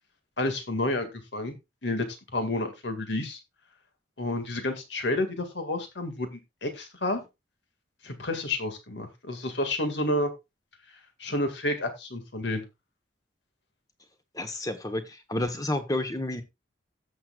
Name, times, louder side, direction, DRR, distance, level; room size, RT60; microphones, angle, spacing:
voice 1, 0.4-1.6 1.8-2.1 2.3-3.4 4.2-7.2 8.0-10.3 11.2-12.6, left 1 dB, 70° left, 2.0 m, -30 dB
voice 2, 14.3-16.4, left 1 dB, 20° left, 1.1 m, -30 dB
17.0 x 6.5 x 2.4 m
head